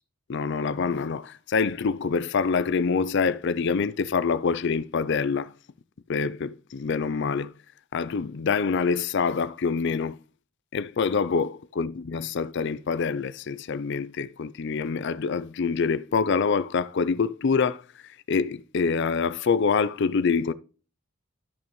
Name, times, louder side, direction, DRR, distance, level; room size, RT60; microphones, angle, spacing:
voice 1, 0.3-5.5 6.1-7.5 7.9-10.2 10.7-20.5, left 5 dB, 55° left, 0.4 m, -26 dB
12.5 x 5.9 x 3.1 m
head